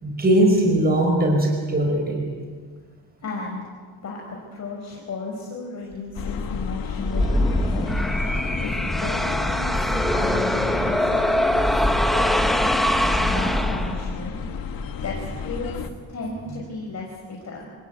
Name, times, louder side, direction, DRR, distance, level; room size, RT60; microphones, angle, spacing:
voice 1, 0.0-2.3 13.0-13.3, right 1 dB, 25° right, 2 dB, 5.0 m, -20 dB
voice 2, 3.2-3.7 4.0-4.2 4.5-7.9 8.6-11.8 12.1-12.5 13.2-14.8 15.0-17.7, left 3 dB, 45° left, -2 dB, 5.5 m, -34 dB
sound 1, 6.1-15.9, left 6 dB, 65° left, 2.0 m, -32 dB
sound 2, 7.0-14.3, equal, ahead, 1.4 m, -22 dB
28.5 x 18.0 x 9.3 m, 1.5 s
cardioid pair, 150°, 37 cm